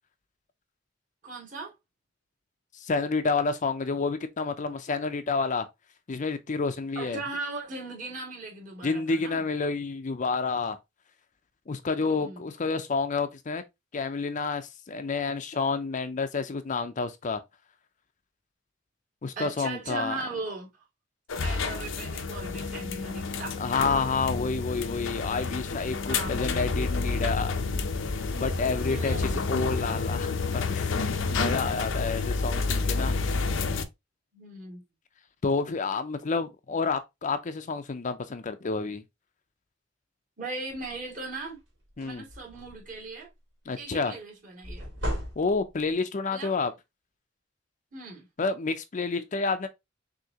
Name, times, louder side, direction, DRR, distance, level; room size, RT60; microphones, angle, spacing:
voice 1, 1.2-1.7 7.0-9.4 12.0-12.5 19.4-20.7 21.4-23.6 26.1-26.4 28.9-29.4 34.3-34.8 40.4-41.6 42.0-43.3 43.8-44.9 46.3-46.5 47.9-48.3, right 3 dB, 45° right, 2.5 m, -38 dB
voice 2, 2.7-5.7 6.1-7.2 8.8-10.8 11.7-13.6 13.9-17.4 19.2-20.2 23.6-27.5 28.3-33.3 35.4-39.0 42.0-42.2 43.7-44.1 45.4-46.7 48.4-49.7, left 4 dB, 40° left, 0.5 m, -29 dB
sound 1, 21.3-33.8, left 4 dB, 80° left, 0.7 m, -29 dB
sound 2, 40.7-41.0 41.4-41.6 41.9-43.0 44.6-45.9, equal, 75° right, 2.5 m, -35 dB
6.3 x 2.8 x 2.8 m
head